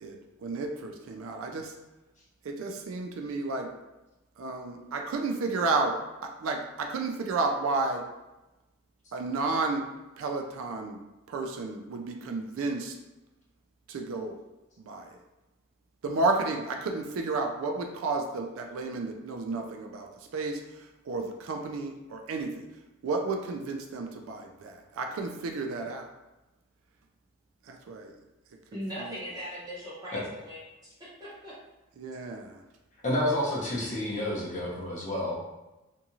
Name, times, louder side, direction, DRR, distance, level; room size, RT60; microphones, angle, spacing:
voice 1, 0.4-1.7 2.5-3.7 4.4-5.9 6.4-8.0 9.1-9.8 10.2-11.0 11.3-12.9 13.9-14.4 14.8-15.1 16.0-20.1 20.3-20.6 21.1-22.5 23.0-26.1 27.7-28.1 29.0-29.1 32.0-32.5, right 3 dB, 75° right, 3 dB, 0.3 m, -31 dB
voice 2, 28.7-30.6 31.2-31.5, equal, 20° right, -9 dB, 1.1 m, -39 dB
voice 3, 33.0-35.3, left 1 dB, 35° left, -5 dB, 0.7 m, -29 dB
2.6 x 2.3 x 2.9 m, 1.0 s
head